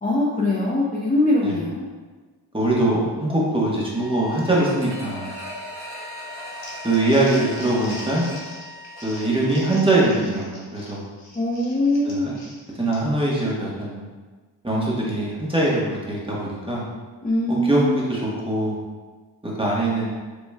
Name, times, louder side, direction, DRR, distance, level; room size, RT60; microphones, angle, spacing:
voice 1, 0.0-1.8 11.3-12.4 17.2-18.1, left 1 dB, 15° left, -6 dB, 0.8 m, -22 dB
voice 2, 2.5-5.3 6.8-8.2 9.0-11.0 12.0-12.3 12.8-14.1 14.6-16.8 17.5-18.8 19.6-20.1, right 1 dB, 10° right, -5 dB, 1.4 m, -22 dB
sound 1, 3.8-9.9, left 2 dB, 40° left, 1.2 m, -41 dB
sound 2, 4.8-9.6 10.0-10.1, equal, 55° right, 1.3 m, -39 dB
Crumpling crinkling, 6.4-13.3, left 1 dB, 60° left, 1.2 m, -42 dB
5.3 x 3.0 x 2.4 m, 1.4 s
supercardioid pair, 45°, 48 cm